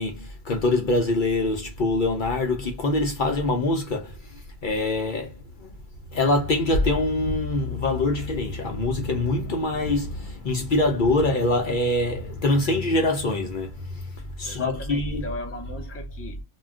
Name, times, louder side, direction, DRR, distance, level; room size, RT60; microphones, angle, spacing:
voice 1, 0.0-4.1 4.6-5.3 6.1-13.7 14.4-15.3, left 2 dB, 55° left, 0.6 m, -24 dB
voice 2, 14.4-16.4, left 2 dB, 20° left, 0.4 m, -38 dB
2.2 x 2.2 x 3.5 m
omnidirectional pair, 1.1 m